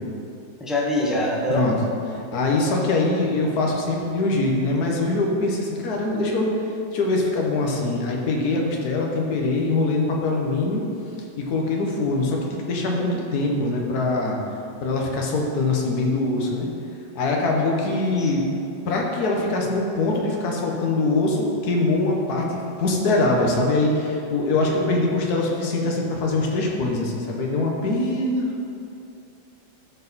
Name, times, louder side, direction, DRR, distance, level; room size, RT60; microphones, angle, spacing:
voice 1, 0.6-1.7 17.6-17.9 18.2-18.3 24.7-24.8, left 1 dB, ahead, -4 dB, 0.4 m, -25 dB
voice 2, 2.1-6.5 6.9-10.8 11.4-14.4 14.8-16.7 17.1-18.5 18.8-28.6, left 2 dB, 55° left, -1 dB, 1.5 m, -23 dB
13.0 x 4.7 x 4.2 m, 2.6 s
omnidirectional pair, 2.2 m